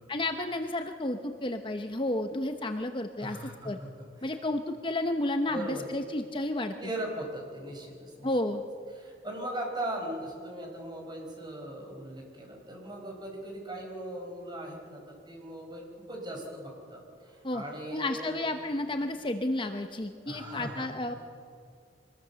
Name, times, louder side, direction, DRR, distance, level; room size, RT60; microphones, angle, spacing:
voice 1, 0.1-3.4 3.6-3.8 4.2-6.7 8.2-8.6 17.4-17.6 17.9-21.1, left 1 dB, 30° left, 6 dB, 0.8 m, -31 dB
voice 2, 3.2-4.4 5.5-5.9 6.8-8.3 8.9-18.6 19.0-19.1 20.3-20.9, right 1 dB, 25° right, 1 dB, 5.1 m, -39 dB
24.5 x 20.0 x 7.0 m, 2.3 s
head